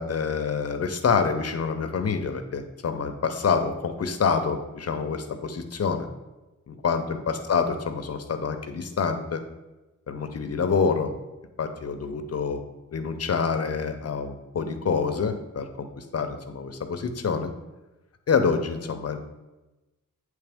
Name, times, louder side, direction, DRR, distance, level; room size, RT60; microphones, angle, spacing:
voice 1, 0.0-6.1 6.7-9.4 10.1-11.1 11.6-12.6 12.9-17.5 18.3-19.3, left 5 dB, 50° left, 7 dB, 0.6 m, -27 dB
8.7 x 3.2 x 3.4 m, 1.1 s
wide cardioid pair, 135°, 31 cm